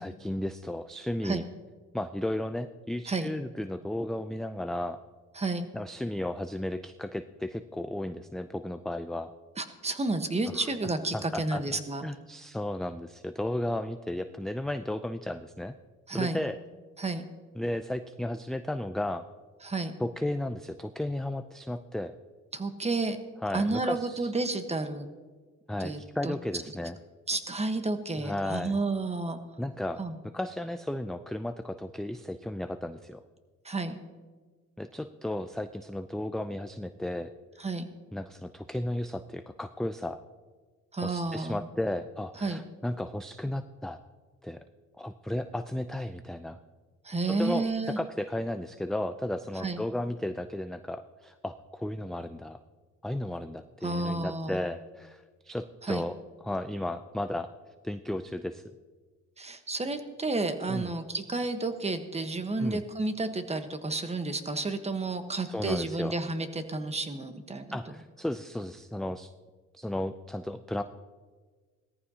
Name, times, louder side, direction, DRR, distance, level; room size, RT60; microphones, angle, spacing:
voice 1, 0.0-1.4 1.9-5.0 5.7-9.3 11.1-11.6 12.0-15.7 16.1-16.6 17.6-19.2 20.0-22.1 23.4-24.3 25.7-27.0 28.2-28.8 29.6-30.0 30.3-33.2 34.8-37.3 38.1-40.2 41.0-44.0 44.4-44.6 45.0-46.6 47.3-52.6 53.0-56.1 56.4-57.5 57.8-58.7 60.7-60.9 62.6-62.8 65.5-66.1 67.7-69.3 69.7-70.8, left 1 dB, ahead, 9 dB, 0.4 m, -34 dB
voice 2, 5.3-5.7 9.6-12.0 16.1-16.4 17.0-17.2 19.6-19.9 22.5-23.2 23.5-25.1 25.8-26.3 27.3-29.4 30.0-30.2 33.6-34.0 37.6-37.9 40.9-41.6 42.4-42.6 47.0-48.0 49.5-49.8 53.8-54.6 55.8-56.1 59.4-67.8, right 3 dB, 20° right, 8 dB, 1.2 m, -31 dB
18.0 x 14.0 x 2.8 m, 1.4 s
cardioid pair, 90°, 30 cm